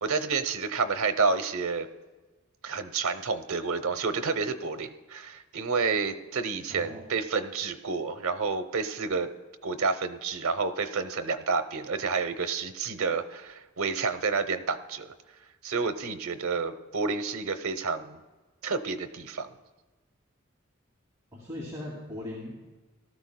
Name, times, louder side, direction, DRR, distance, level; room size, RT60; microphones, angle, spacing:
voice 1, 0.0-1.9 2.6-9.3 9.6-15.1 15.6-18.2 18.6-19.5, right 4 dB, 85° right, 8 dB, 0.8 m, -29 dB
voice 2, 6.7-7.0 21.3-22.8, left 1 dB, 15° right, -5 dB, 2.4 m, -39 dB
18.5 x 13.0 x 2.2 m, 1.2 s
head